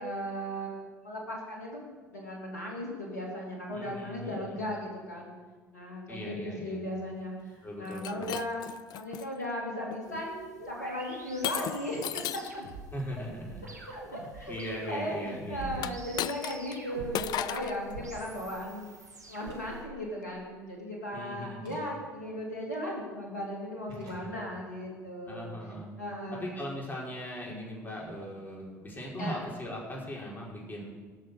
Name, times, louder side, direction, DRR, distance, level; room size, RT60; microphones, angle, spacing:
voice 1, 0.0-1.8 2.1-5.3 5.7-8.6 8.9-10.4 10.6-12.2 13.1-13.2 13.6-18.9 19.3-25.5 26.0-26.6 27.5-27.6 29.2-29.4, equal, 85° left, -1 dB, 2.5 m, -37 dB
voice 2, 3.7-4.6 6.1-6.8 7.6-8.3 12.9-13.6 14.5-15.9 21.1-21.8 24.0-24.4 25.3-25.9 26.3-30.9, equal, 20° left, -3 dB, 5.2 m, -39 dB
Shatter, 7.9-9.3 9.9-10.2 11.4-12.6 15.7-16.8 17.1-17.8, left 12 dB, 50° left, 0.5 m, -35 dB
sound 1, 10.0-19.8, right 2 dB, 90° right, 1.7 m, -46 dB
sound 2, 19.4-19.6 21.6-21.8 23.9-24.2, right 3 dB, 70° right, 5.0 m, -57 dB
18.5 x 6.7 x 6.9 m, 1.5 s
figure-of-eight pair, 60°, 9 cm